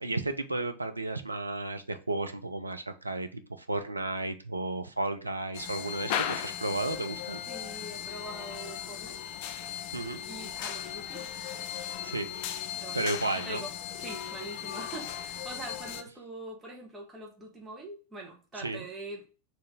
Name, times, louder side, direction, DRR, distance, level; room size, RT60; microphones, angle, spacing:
voice 1, 0.0-7.4 9.9-10.2 12.0-12.3 12.9-13.6 18.6-18.8, right 2 dB, 85° right, 0.5 m, -33 dB
sound 1, 5.5-16.0, left 9 dB, 45° left, 0.4 m, -37 dB
voice 2, 7.5-9.2 10.2-11.2 12.7-19.2, right 2 dB, 10° right, 1.6 m, -43 dB
4.5 x 3.2 x 3.7 m
figure-of-eight pair, 90°, 0 cm